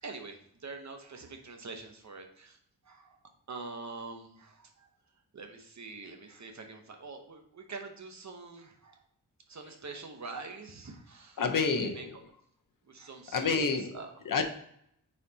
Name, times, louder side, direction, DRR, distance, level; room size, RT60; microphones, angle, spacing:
voice 1, 0.0-2.6 2.8-3.2 3.5-4.9 5.3-9.0 9.5-12.2 12.8-14.2, right 3 dB, 50° right, 4 dB, 0.9 m, -45 dB
voice 2, 11.4-12.0 13.3-14.0 14.3-14.4, left 4 dB, 60° left, 6 dB, 0.8 m, -28 dB
8.7 x 4.3 x 2.8 m, 0.71 s
wide cardioid pair, 175°, 37 cm